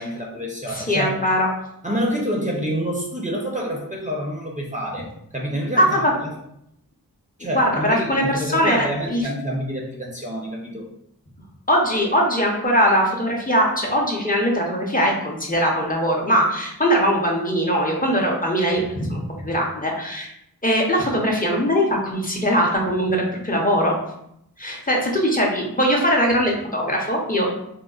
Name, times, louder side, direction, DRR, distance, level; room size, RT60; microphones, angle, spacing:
voice 1, 0.0-1.3 1.8-5.1 5.3-6.3 7.4-10.9, equal, 20° right, -2 dB, 0.5 m, -27 dB
voice 2, 0.7-1.5 5.8-6.1 7.4-9.2 11.7-20.3 20.6-24.0 24.6-27.5, equal, 25° left, -1 dB, 0.6 m, -21 dB
3.5 x 2.0 x 2.3 m, 0.77 s
wide cardioid pair, 55°, 37 cm